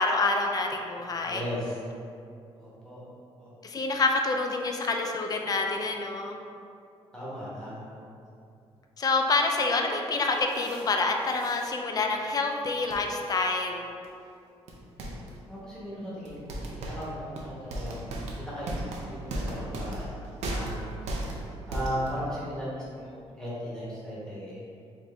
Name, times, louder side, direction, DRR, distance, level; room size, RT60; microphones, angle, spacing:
voice 1, 0.0-1.4 3.6-6.4 9.0-13.9, left 3 dB, 35° left, 2 dB, 0.4 m, -27 dB
voice 2, 1.3-1.8 2.6-3.0 3.4-3.5 7.1-8.1 15.5-18.7 19.0-20.9 21.7-24.6, equal, 5° left, -9 dB, 1.0 m, -37 dB
sound 1, 10.2-10.9 11.2-11.8 12.9-13.0 14.0-14.1 14.7-15.4 16.2-22.3, right 1 dB, 85° right, 0.5 m, -36 dB
4.4 x 2.5 x 3.1 m, 2.5 s
cardioid pair, 115°, 11 cm